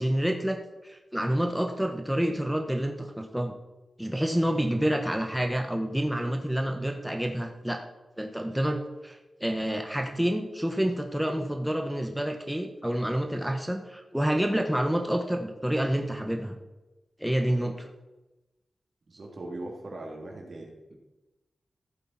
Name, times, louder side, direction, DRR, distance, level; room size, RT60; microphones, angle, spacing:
voice 1, 0.0-3.5 4.0-7.8 8.2-16.6 17.2-17.9, equal, 5° right, 3 dB, 1.4 m, -28 dB
voice 2, 19.1-20.9, right 2 dB, 60° right, 0 dB, 3.1 m, -40 dB
14.5 x 8.0 x 4.4 m, 1.0 s
cardioid pair, 60°, 0 cm